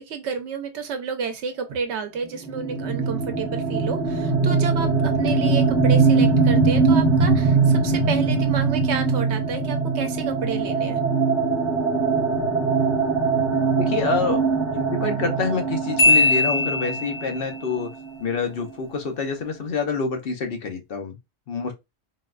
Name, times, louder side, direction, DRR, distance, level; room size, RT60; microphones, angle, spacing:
voice 1, 0.0-11.0, right 6 dB, 90° right, 1.0 m, -30 dB
sound 1, 2.5-18.1, right 4 dB, 40° right, 1.3 m, -21 dB
voice 2, 13.8-14.4 14.7-17.9 18.2-21.2 21.5-21.7, left 4 dB, 65° left, 0.8 m, -27 dB
Marimba xylophone, 16.0-17.4, left 2 dB, 80° left, 1.4 m, -19 dB
3.9 x 2.2 x 2.4 m
omnidirectional pair, 1.1 m